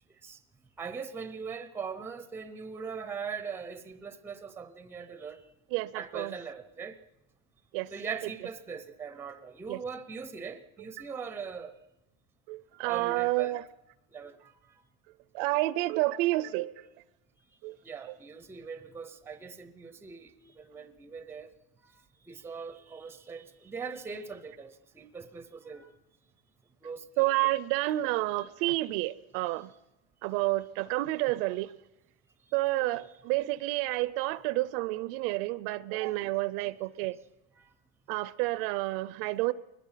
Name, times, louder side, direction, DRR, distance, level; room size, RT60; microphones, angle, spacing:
voice 1, 0.8-5.4 5.9-7.0 7.9-11.7 12.8-13.6 14.1-14.5 17.8-21.5 22.3-25.9 26.8-27.1, right 5 dB, 5° right, 0.6 m, -41 dB
voice 2, 5.7-6.3 7.7-7.9 8.2-8.3 9.7-9.8 12.5-13.6 15.3-16.9 17.6-17.8 18.1-18.2 27.2-29.7 30.2-31.7 32.5-37.2 38.1-39.5, right 18 dB, 55° right, 0.6 m, -30 dB
22.5 x 20.5 x 5.7 m
cardioid pair, 170°, 34 cm